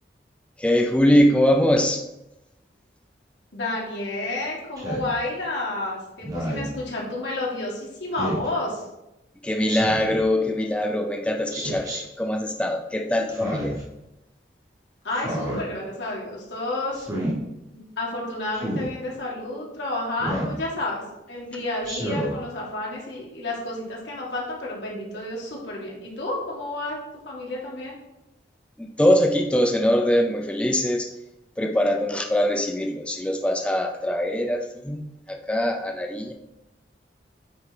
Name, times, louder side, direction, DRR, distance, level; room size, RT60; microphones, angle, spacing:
voice 1, 0.6-2.0 9.4-13.7 28.8-31.1 31.6-36.3, left 1 dB, 5° left, 4 dB, 0.4 m, -22 dB
voice 2, 3.5-8.9 15.0-17.0 17.7-27.0 27.3-28.0, left 2 dB, 80° left, -4 dB, 2.4 m, -30 dB
Speech synthesizer, 4.8-5.1 6.2-6.7 8.2-8.5 9.7-10.2 11.5-12.0 13.3-13.8 15.1-15.6 16.9-17.4 18.5-18.9 20.2-20.6 21.8-22.3, equal, 20° right, 2.0 m, -29 dB
8.4 x 4.7 x 4.5 m, 0.93 s
head